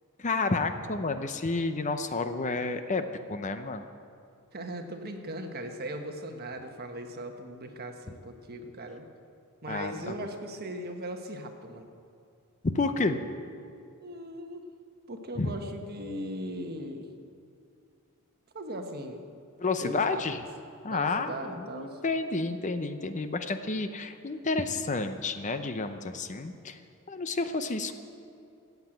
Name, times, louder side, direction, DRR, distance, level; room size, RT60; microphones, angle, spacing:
voice 1, 0.2-3.8 9.7-10.1 12.7-13.2 15.4-15.5 19.6-20.4 20.8-26.8 27.1-28.0, left 3 dB, 35° left, 9 dB, 0.7 m, -30 dB
voice 2, 4.5-9.1 9.6-11.9 14.0-14.7 15.1-17.1 18.5-19.2 19.8-20.2 20.9-22.0, right 1 dB, 45° right, 5 dB, 1.3 m, -38 dB
15.0 x 8.2 x 9.0 m, 2.5 s
head